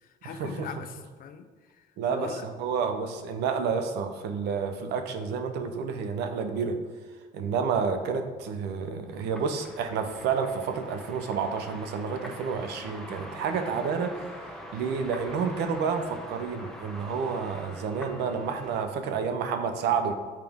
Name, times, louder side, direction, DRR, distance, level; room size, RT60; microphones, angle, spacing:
voice 1, 0.0-2.4, left 7 dB, 55° left, 9 dB, 0.6 m, -42 dB
voice 2, 2.0-6.8 7.3-14.2 14.7-20.1, right 6 dB, 80° right, 7 dB, 0.7 m, -29 dB
sound 1, 9.1-18.9, equal, 5° left, 0.8 m, -44 dB
7.4 x 4.5 x 3.5 m, 1.4 s
cardioid pair, 110°, 17 cm